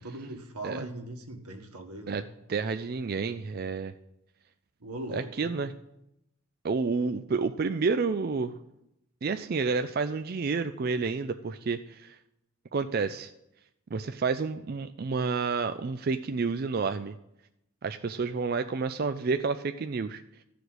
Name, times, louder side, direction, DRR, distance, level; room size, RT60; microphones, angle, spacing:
voice 1, 0.0-2.2 4.8-5.5, right 1 dB, 90° right, 3 dB, 1.6 m, -40 dB
voice 2, 2.5-4.0 5.1-5.7 6.6-8.5 9.2-12.2 12.7-13.3 13.9-17.2 17.8-20.2, right 4 dB, 40° right, 9 dB, 0.4 m, -30 dB
14.5 x 5.0 x 7.9 m, 0.84 s
head